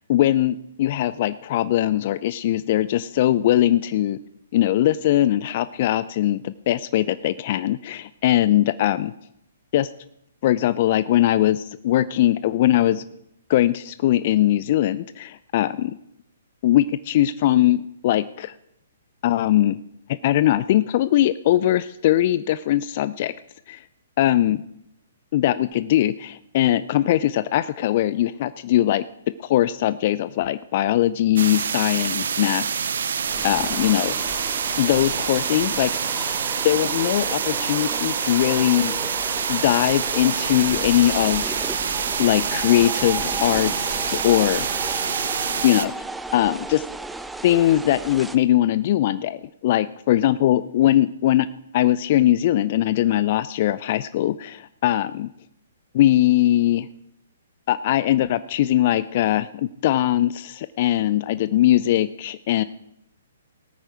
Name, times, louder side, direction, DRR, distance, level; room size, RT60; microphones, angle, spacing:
voice 1, 0.1-4.2 4.5-9.1 9.7-9.9 10.4-13.0 13.5-16.0 16.6-18.5 19.2-19.8 20.2-23.3 23.7-23.8 24.2-24.6 25.3-29.0 29.4-33.1 33.4-34.4 34.8-35.9 36.6-39.0 39.5-41.7 42.2-44.7 45.6-45.9 46.3-46.8 47.4-51.5 51.7-55.3 55.9-56.9 57.7-62.6, left 13 dB, 45° left, 16 dB, 0.4 m, -21 dB
sound 1, 31.4-45.9, right 7 dB, 60° right, 0.6 m, -26 dB
sound 2, 33.2-48.4, right 2 dB, 5° right, 0.6 m, -35 dB
18.5 x 9.0 x 4.8 m, 0.74 s
figure-of-eight pair, 125°, 0 cm